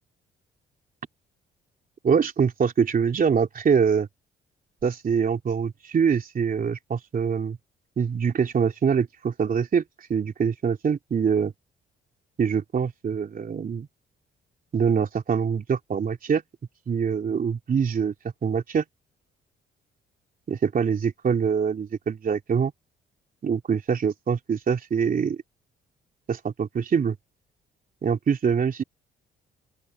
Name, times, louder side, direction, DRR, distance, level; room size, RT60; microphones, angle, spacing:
voice 1, 2.0-4.1 4.8-7.6 8.0-9.8 10.1-11.5 12.4-13.9 14.7-16.4 16.9-18.1 18.4-18.8 20.5-22.7 23.4-25.4 26.3-27.2 28.0-28.8, right 6 dB, 45° right, 3.2 m, -24 dB
open air
cardioid pair, 90°, 20 cm